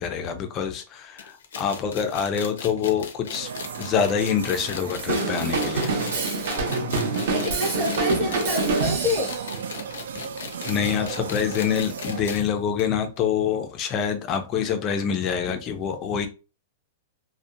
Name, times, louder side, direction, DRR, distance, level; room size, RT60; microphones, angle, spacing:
voice 1, 0.0-3.5 3.8-6.0 10.7-16.3, left 7 dB, 20° left, 0.3 m, -26 dB
sound 1, 1.2-12.5 12.8-12.9 13.2-13.3 14.1-14.2, left 6 dB, 90° left, 0.5 m, -38 dB
sound 2, 3.3-12.2, right 7 dB, 85° right, 0.4 m, -36 dB
Drum kit / Drum, 5.1-9.5, right 3 dB, 55° right, 0.7 m, -26 dB
voice 2, 7.3-9.3, left 1 dB, 15° right, 0.8 m, -27 dB
2.6 x 2.1 x 2.5 m
supercardioid pair, 175°, 0 cm